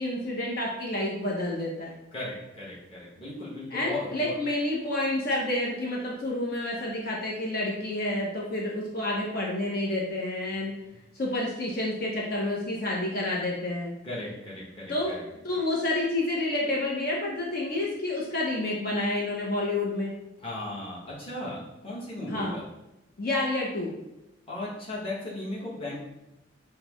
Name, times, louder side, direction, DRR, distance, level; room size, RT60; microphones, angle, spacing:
voice 1, 0.0-1.9 3.7-10.7 11.2-13.9 14.9-15.1 15.4-20.1 22.3-22.6 23.2-23.9, left 1 dB, 50° left, -3 dB, 0.7 m, -29 dB
voice 2, 2.1-4.3 14.0-15.2 20.4-22.6 24.5-25.9, left 1 dB, 30° left, -6 dB, 1.2 m, -36 dB
5.7 x 2.1 x 3.0 m, 0.96 s
head